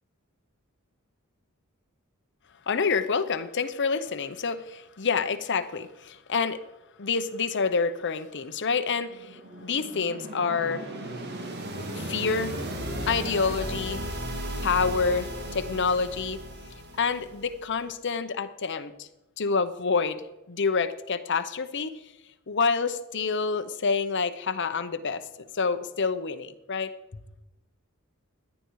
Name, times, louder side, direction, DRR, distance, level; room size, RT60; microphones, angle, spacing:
voice 1, 2.7-6.6 7.0-10.8 11.9-12.6 13.1-14.0 14.6-16.4 17.0-19.1 19.4-21.9 22.5-25.2 25.5-26.9, left 5 dB, 55° left, 10 dB, 0.8 m, -27 dB
sound 1, 8.8-17.7, right 1 dB, 50° right, 2.0 m, -36 dB
17.0 x 10.5 x 4.7 m, 0.98 s
head